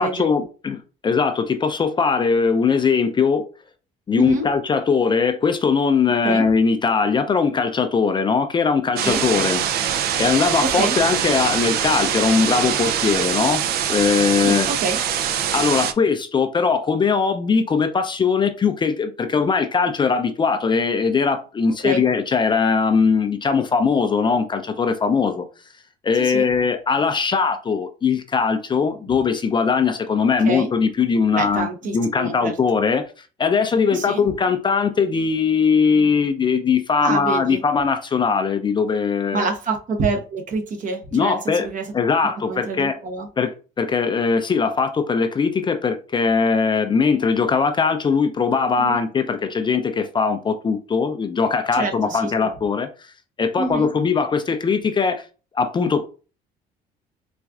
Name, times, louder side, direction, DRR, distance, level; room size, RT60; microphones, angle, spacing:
voice 1, 0.0-3.5 4.1-9.6 10.2-13.6 13.9-14.7 15.5-25.5 26.0-31.7 31.9-33.1 33.4-39.4 41.1-41.7 41.9-42.9 43.4-43.5 43.8-52.9 53.4-55.2 55.5-56.0, left 5 dB, 30° left, 0.4 m, -20 dB
sound 1, 9.0-15.9, right 9 dB, 65° right, 0.4 m, -23 dB
voice 2, 10.6-11.0 14.4-15.0 21.8-22.0 26.1-26.5 30.2-30.7 31.3-32.5 33.9-34.2 37.0-37.6 39.3-41.9 42.4-43.3 48.8-49.0 51.7-52.5 53.6-53.9, right 3 dB, 50° right, 0.9 m, -26 dB
4.1 x 2.4 x 2.3 m
cardioid pair, 110°, 17 cm